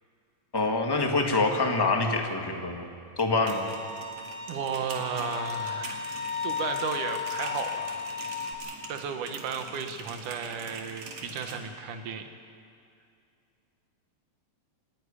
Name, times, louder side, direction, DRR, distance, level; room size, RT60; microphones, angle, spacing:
voice 1, 0.5-2.8 3.2-3.6, left 3 dB, 20° left, 2 dB, 0.6 m, -25 dB
sound 1, 3.3-11.6, right 3 dB, 60° right, 3.2 m, -44 dB
Bowed string instrument, 3.5-8.5, left 6 dB, 90° left, 3.9 m, -35 dB
voice 2, 4.5-7.9 8.9-12.3, right 6 dB, 90° right, 6 dB, 2.8 m, -34 dB
27.5 x 10.5 x 9.9 m, 2.4 s
omnidirectional pair, 3.5 m